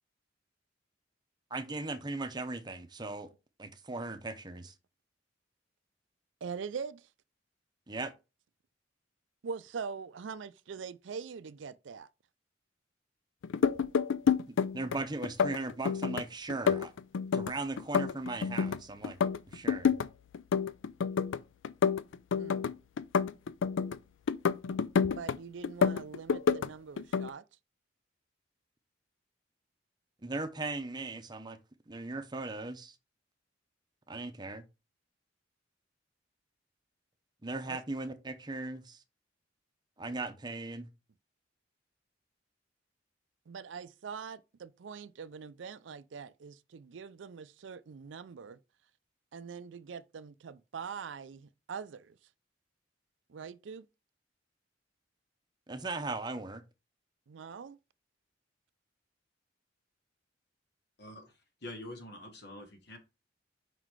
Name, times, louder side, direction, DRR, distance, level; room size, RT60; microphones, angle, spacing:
voice 1, 1.5-3.3 3.6-4.7 7.9-8.1 14.5-16.9 17.3-19.2 19.5-20.0 30.2-31.6 31.9-32.9 34.1-34.6 37.4-39.0 40.0-40.9 55.7-56.6, right 2 dB, 25° right, 0.7 m, -38 dB
voice 2, 6.4-7.1 9.4-12.1 22.4-22.6 25.0-27.4 37.7-37.8 43.5-48.6 49.3-52.2 53.3-53.9 57.3-57.8, right 6 dB, 75° right, 0.4 m, -43 dB
sound 1, 13.4-15.0 15.2-16.2 16.5-18.8 19.0-20.1 20.3-21.4 21.6-24.0 24.3-25.4 25.6-26.7 27.0-27.3, left 6 dB, 85° left, 0.4 m, -28 dB
voice 3, 61.0-63.0, left 1 dB, 60° left, 1.6 m, -46 dB
5.4 x 4.0 x 4.6 m
head